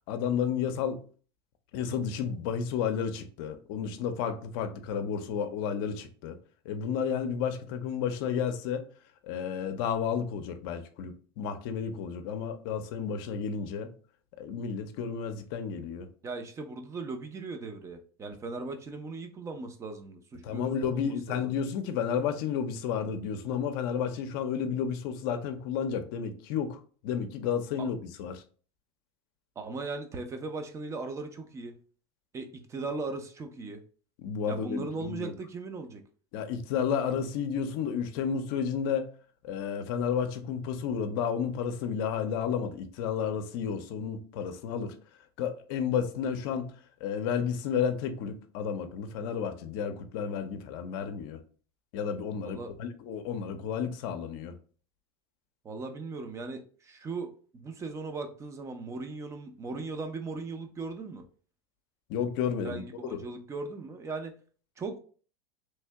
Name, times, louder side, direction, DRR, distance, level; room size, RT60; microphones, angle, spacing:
voice 1, 0.1-1.0 1.7-6.4 6.6-8.8 9.2-13.9 14.4-16.1 20.4-28.4 34.2-35.3 36.3-39.1 39.4-45.0 45.4-46.7 47.0-51.4 51.9-54.5 62.1-62.8 63.1-63.2, left 7 dB, 60° left, 0.6 m, -32 dB
voice 2, 16.2-21.4 27.8-27.9 29.6-31.8 32.3-33.8 34.5-36.0 52.4-52.7 55.6-61.3 62.6-64.3 64.8-65.0, right 3 dB, 20° right, 0.6 m, -38 dB
3.2 x 2.7 x 3.4 m
supercardioid pair, 120°, 13 cm